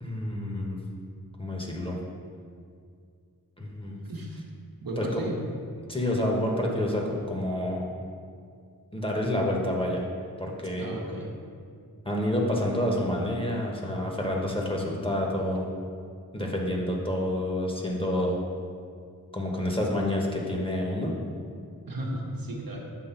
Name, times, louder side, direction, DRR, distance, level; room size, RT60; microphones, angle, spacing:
voice 1, 0.0-0.8 1.4-2.0 3.6-4.0 5.0-5.2 5.9-7.9 8.9-10.0 10.4-10.9 12.0-15.7 16.3-18.4 19.3-21.2, left 1 dB, 15° left, -2 dB, 1.1 m, -28 dB
voice 2, 4.1-4.4 4.8-5.4 10.8-11.3 21.9-22.8, right 1 dB, 65° right, -1 dB, 1.0 m, -34 dB
7.5 x 3.1 x 5.8 m, 2.2 s
wide cardioid pair, 55°, 37 cm